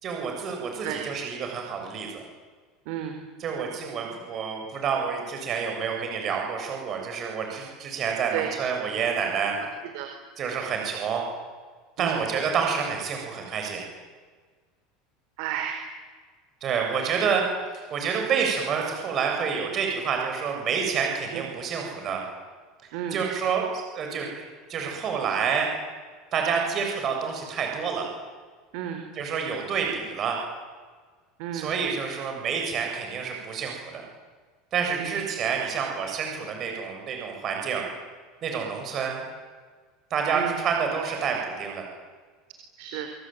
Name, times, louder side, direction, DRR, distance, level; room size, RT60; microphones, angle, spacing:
voice 1, 0.0-2.2 3.4-9.6 10.4-11.2 12.0-13.9 16.6-17.4 17.7-22.2 23.1-24.3 24.7-25.7 26.3-28.1 29.1-30.4 31.5-34.0 34.7-37.8 38.4-39.2 40.1-41.9, right 6 dB, 35° right, 2 dB, 7.7 m, -28 dB
voice 2, 2.9-3.2 8.3-8.5 9.6-9.7 9.9-10.1 12.0-12.2 15.4-15.8 21.3-21.4 22.9-23.2 28.7-29.0 31.4-31.7 35.0-35.2 40.3-40.6 42.8-43.1, right 10 dB, 65° right, 6 dB, 4.2 m, -32 dB
26.5 x 23.5 x 9.4 m, 1.5 s
supercardioid pair, 135°, 0 cm